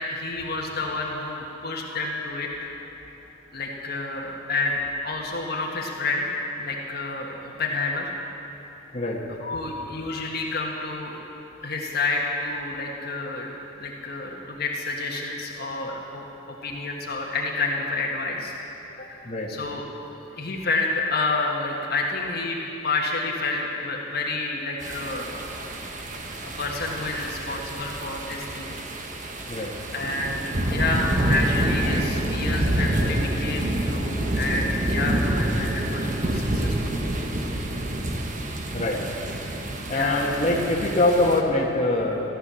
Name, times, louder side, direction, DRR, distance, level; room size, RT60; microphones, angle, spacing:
voice 1, 0.1-2.7 3.5-4.8 5.0-8.1 9.4-11.2 11.6-13.5 13.8-18.6 18.9-19.2 19.5-19.8 20.4-22.6 22.8-25.4 26.6-28.7 29.9-37.0 39.9-40.3, left 3 dB, 50° left, -1 dB, 1.6 m, -29 dB
sound 1, 24.8-41.4, right 1 dB, 40° right, 1.2 m, -27 dB
voice 2, 39.9-42.2, left 2 dB, 35° left, -3 dB, 1.6 m, -23 dB
15.0 x 12.0 x 7.0 m, 3.0 s
head